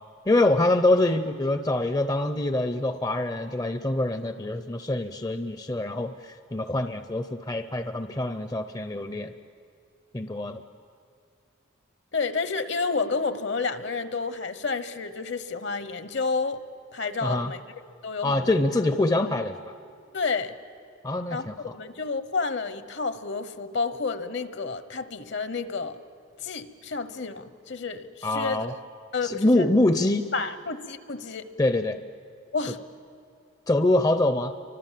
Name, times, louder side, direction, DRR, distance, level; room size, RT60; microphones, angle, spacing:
voice 1, 0.3-9.3 10.1-10.6 17.2-17.5 18.2-19.7 21.0-21.7 28.2-28.7 29.2-30.3 31.6-32.0 33.7-34.5, left 2 dB, 20° left, 10 dB, 0.5 m, -25 dB
voice 2, 12.1-16.6 16.9-17.6 18.0-18.6 20.1-20.5 21.3-26.0 26.4-28.7 29.1-29.7 30.3-31.5 32.5-32.8, left 4 dB, 60° left, 12 dB, 1.0 m, -30 dB
29.5 x 24.5 x 7.5 m, 2.4 s
head